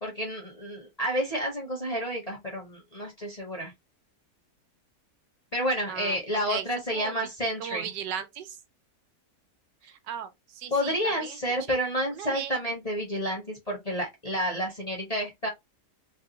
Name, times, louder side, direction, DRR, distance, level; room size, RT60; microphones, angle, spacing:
voice 1, 0.0-3.7 5.5-7.9 10.7-15.5, equal, 30° left, 0.7 m, -30 dB
voice 2, 5.9-6.2 6.5-6.7 6.9-7.1 7.6-8.6 9.8-11.4 11.7-11.8 12.1-12.6, right 9 dB, 85° right, 1.3 m, -37 dB
3.3 x 2.2 x 2.8 m
omnidirectional pair, 1.8 m